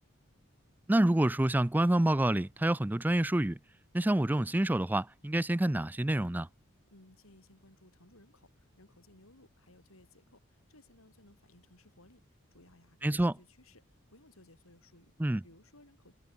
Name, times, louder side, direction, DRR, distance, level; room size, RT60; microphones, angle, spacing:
voice 1, 0.9-3.6 3.9-6.5 13.0-13.3 15.2-15.4, right 1 dB, 10° right, 0.3 m, -27 dB
voice 2, 6.9-12.2 12.5-13.8 14.1-15.1 15.4-16.1, left 1 dB, 90° left, 7.0 m, -60 dB
head